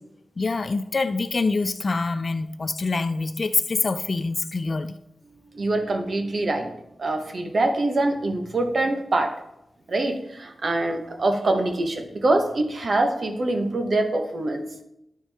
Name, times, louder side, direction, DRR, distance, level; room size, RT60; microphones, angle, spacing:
voice 1, 0.4-5.0, left 3 dB, 40° left, 0.3 m, -25 dB
voice 2, 5.5-6.7 7.0-9.4 9.9-14.7, right 2 dB, 45° right, 0.9 m, -24 dB
10.0 x 4.4 x 3.4 m
wide cardioid pair, 165°, 0 cm